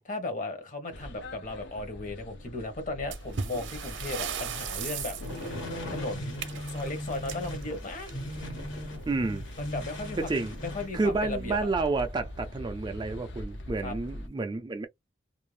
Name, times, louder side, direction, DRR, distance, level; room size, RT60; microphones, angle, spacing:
voice 1, 0.0-8.1 9.6-11.7 13.8-14.0, left 2 dB, 40° left, 0.9 m, -36 dB
sound 1, 0.9-14.3, left 1 dB, 65° left, 0.6 m, -43 dB
sound 2, 3.1-8.5 9.7-9.9 10.2-10.3 11.0-11.1 11.7-12.0, right 7 dB, 70° right, 0.6 m, -38 dB
sound 3, 5.2-10.9, left 1 dB, 85° left, 1.4 m, -38 dB
voice 2, 9.1-9.5 10.2-10.5 10.9-14.9, right 3 dB, 25° right, 0.3 m, -30 dB
2.5 x 2.0 x 3.1 m
head